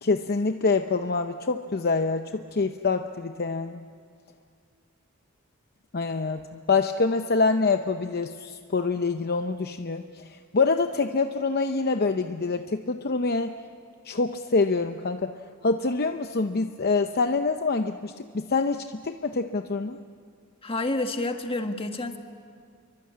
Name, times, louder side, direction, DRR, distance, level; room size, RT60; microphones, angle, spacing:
voice 1, 0.0-3.8 5.9-13.5 14.0-15.4 15.6-20.0, left 4 dB, 50° left, 7 dB, 0.7 m, -26 dB
voice 2, 20.6-22.2, left 2 dB, 25° left, 5 dB, 1.7 m, -29 dB
29.0 x 24.0 x 8.6 m, 2.1 s
head